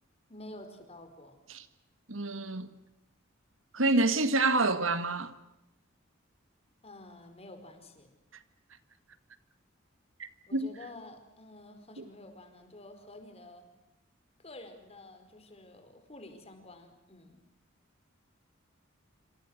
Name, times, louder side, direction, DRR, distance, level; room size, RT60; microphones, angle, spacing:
voice 1, 0.3-1.4 6.8-8.1 10.5-13.7 14.4-17.4, left 2 dB, 30° left, 4.8 m, -49 dB
voice 2, 2.1-2.7 3.7-5.3 10.2-10.7 12.0-12.1, right 2 dB, 70° right, 1.8 m, -28 dB
27.5 x 26.5 x 6.5 m
head